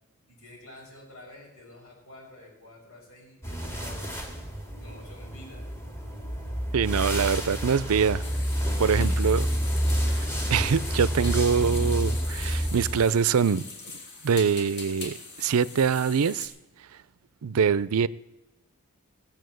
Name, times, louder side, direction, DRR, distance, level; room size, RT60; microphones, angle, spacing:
voice 1, 0.3-4.2 4.8-5.6 9.1-9.4, left 1 dB, 80° left, 6.3 m, -49 dB
sound 1, 3.4-13.0, equal, 10° left, 2.1 m, -29 dB
voice 2, 6.7-8.2 8.8-9.5 10.1-13.6 14.2-16.5 17.4-18.1, right 6 dB, 75° right, 0.5 m, -24 dB
sound 2, 8.2-16.5, left 3 dB, 50° left, 2.6 m, -41 dB
17.0 x 7.4 x 7.8 m
head